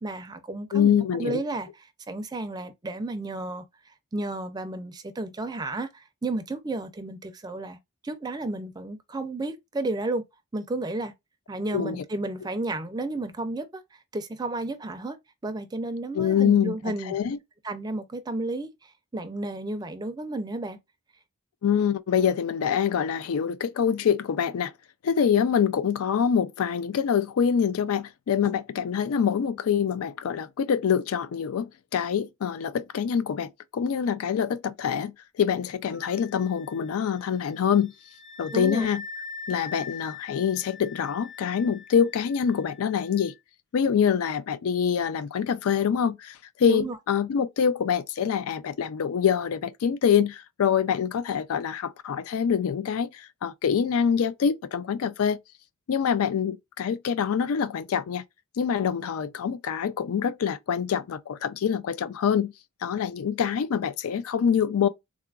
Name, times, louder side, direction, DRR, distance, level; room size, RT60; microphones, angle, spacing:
voice 1, 0.0-3.6 4.1-7.8 8.0-10.2 10.5-11.1 11.5-13.8 14.1-15.2 15.4-17.1 17.6-20.8 38.5-38.9 46.6-47.0, right 2 dB, 20° right, 0.4 m, -32 dB
voice 2, 0.7-1.4 11.7-12.0 16.1-17.4 21.6-24.7 25.0-37.9 38.4-39.0 39.5-43.3 43.7-55.4 55.9-58.2 58.6-62.5 62.8-64.9, left 7 dB, 80° left, 0.4 m, -25 dB
Wind instrument woodwind instrument, 35.9-43.3, left 5 dB, 60° left, 0.9 m, -43 dB
3.7 x 2.4 x 2.3 m
head